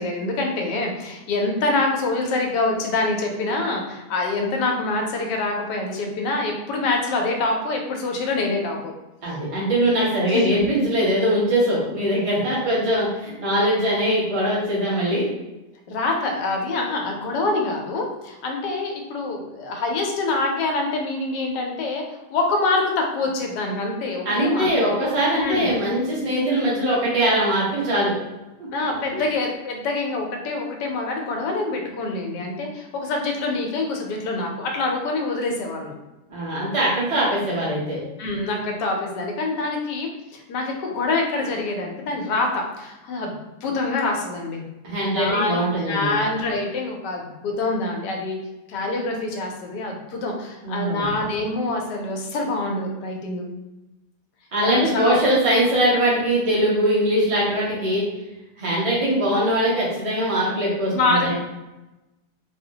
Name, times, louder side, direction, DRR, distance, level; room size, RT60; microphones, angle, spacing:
voice 1, 0.0-8.9 10.3-10.7 15.9-25.0 25.3-25.7 28.7-35.9 38.2-43.4 43.6-44.7 45.1-45.5 45.9-48.4 48.7-53.4 54.6-55.2 60.9-61.3, left 2 dB, 90° left, 2 dB, 1.2 m, -25 dB
voice 2, 9.2-15.3 24.2-28.1 29.1-29.3 36.3-38.0 44.8-46.1 50.6-51.1 54.5-58.0 58.6-61.3, right 1 dB, 25° right, -6 dB, 0.8 m, -21 dB
3.8 x 2.0 x 2.8 m, 1.0 s
omnidirectional pair, 1.8 m